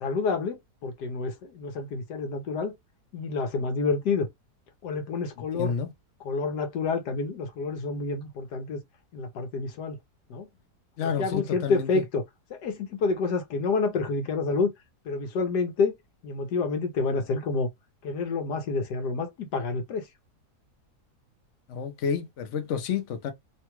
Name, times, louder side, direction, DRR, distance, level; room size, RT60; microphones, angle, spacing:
voice 1, 0.0-2.7 3.1-4.3 4.8-5.7 6.2-8.8 9.1-10.0 10.3-10.5 11.0-12.2 12.5-14.7 15.0-15.9 16.2-17.7 18.0-20.1, left 4 dB, 85° left, 1.5 m, -28 dB
voice 2, 5.4-5.9 11.0-12.0 21.7-23.3, left 7 dB, 55° left, 0.9 m, -30 dB
3.3 x 2.3 x 2.9 m
omnidirectional pair, 1.7 m